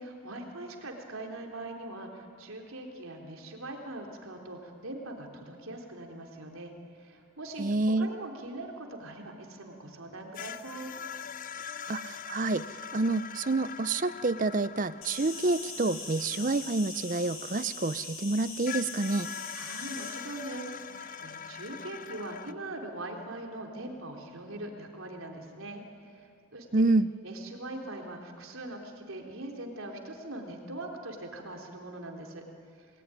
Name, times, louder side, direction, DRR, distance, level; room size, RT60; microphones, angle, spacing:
voice 1, 0.0-7.7 8.0-10.9 19.5-26.8 27.2-32.4 32.8-32.9, right 2 dB, 75° right, 2 dB, 3.6 m, -41 dB
voice 2, 7.6-8.1 11.9-19.3 26.7-27.1, right 2 dB, 40° right, 15 dB, 0.6 m, -28 dB
sound 1, 10.3-18.0 18.7-22.5, left 7 dB, 40° left, 0.6 m, -43 dB
Insect, 15.0-20.1, left 4 dB, 75° left, 6.3 m, -41 dB
28.5 x 20.0 x 9.9 m, 2.4 s
head